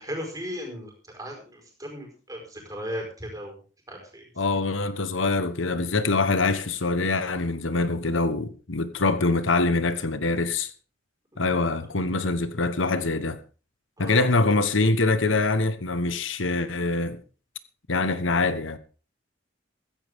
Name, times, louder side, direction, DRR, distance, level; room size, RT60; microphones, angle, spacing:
voice 1, 0.0-3.6 3.9-4.3 11.9-12.0 14.0-14.3, equal, 20° right, 4.9 m, -36 dB
voice 2, 4.4-10.7 11.4-13.4 14.0-17.2 17.9-18.8, left 3 dB, 90° left, 1.3 m, -24 dB
15.0 x 14.0 x 3.7 m
head